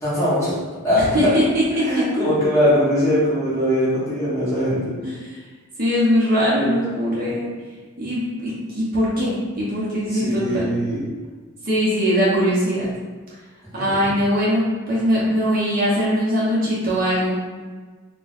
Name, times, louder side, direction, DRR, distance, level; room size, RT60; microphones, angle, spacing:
voice 1, 0.0-0.6 0.8-1.3 1.8-4.9 10.1-11.0 13.8-13.9, equal, 15° left, -11 dB, 1.1 m, -21 dB
voice 2, 0.9-2.0 5.0-5.4 5.8-7.5 8.0-10.7 11.6-12.9 13.7-17.4, equal, 40° right, -7 dB, 0.8 m, -21 dB
2.4 x 2.3 x 4.0 m, 1.4 s
head